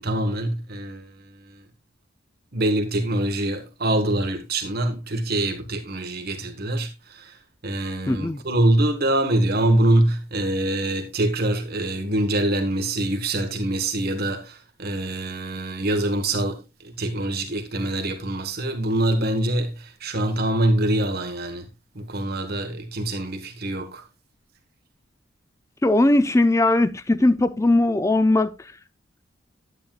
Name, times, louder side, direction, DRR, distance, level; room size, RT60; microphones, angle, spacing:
voice 1, 0.0-1.6 2.5-21.7 21.9-24.0, right 1 dB, 50° right, 1.4 m, -24 dB
voice 2, 8.1-8.4 25.8-28.7, left 2 dB, 15° left, 0.4 m, -19 dB
9.9 x 9.2 x 2.4 m
head